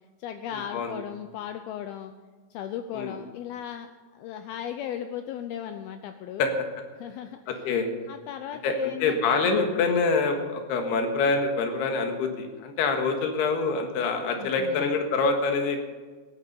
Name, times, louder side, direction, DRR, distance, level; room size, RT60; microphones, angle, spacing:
voice 1, 0.2-2.1 2.5-6.5 7.0-7.7 8.1-9.2 14.4-14.9, left 9 dB, 85° left, 8 dB, 2.2 m, -37 dB
voice 2, 7.5-7.9 8.6-15.8, left 4 dB, 70° left, 4 dB, 3.5 m, -25 dB
16.0 x 11.5 x 5.4 m, 1.4 s
omnidirectional pair, 5.1 m